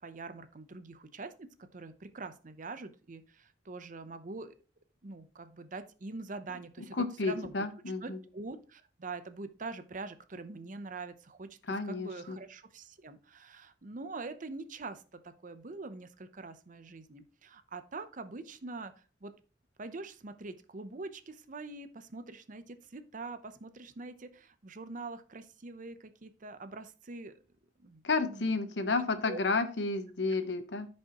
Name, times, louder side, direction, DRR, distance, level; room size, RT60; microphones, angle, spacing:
voice 1, 0.0-4.5 5.0-7.5 8.0-18.9 19.2-19.3 19.8-27.3 27.8-28.5 29.2-29.4, right 3 dB, 45° right, 11 dB, 0.7 m, -44 dB
voice 2, 7.0-8.2 11.7-12.4 28.0-30.9, left 3 dB, 70° left, 10 dB, 1.0 m, -31 dB
14.0 x 5.4 x 3.0 m, 0.35 s
head